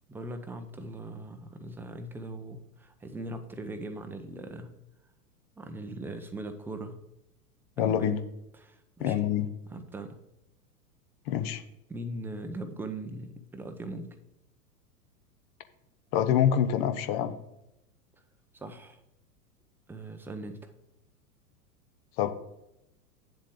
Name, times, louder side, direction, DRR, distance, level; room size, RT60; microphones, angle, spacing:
voice 1, 0.1-4.7 5.6-7.0 7.8-8.1 8.6-9.2 9.7-10.2 11.9-14.2 18.5-19.0 19.9-20.7, right 1 dB, 5° right, 7 dB, 0.7 m, -40 dB
voice 2, 7.8-8.2 9.0-9.5 11.3-11.6 16.1-17.4 22.2-22.3, left 9 dB, 40° left, 10 dB, 0.8 m, -26 dB
8.7 x 7.4 x 3.7 m, 0.84 s
figure-of-eight pair, 100°, 47 cm